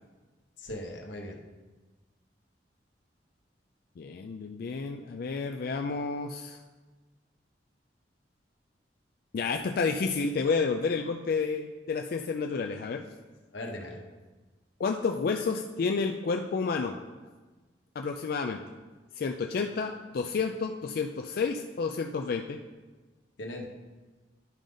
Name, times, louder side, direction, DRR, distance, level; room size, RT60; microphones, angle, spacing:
voice 1, 0.6-1.4 13.5-14.0 23.4-23.7, left 1 dB, 85° left, 1 dB, 1.1 m, -38 dB
voice 2, 4.0-6.6 9.3-13.0 14.8-17.0 18.0-18.6 19.2-22.6, left 4 dB, 55° left, 4 dB, 0.4 m, -30 dB
10.5 x 3.9 x 5.1 m, 1.3 s
head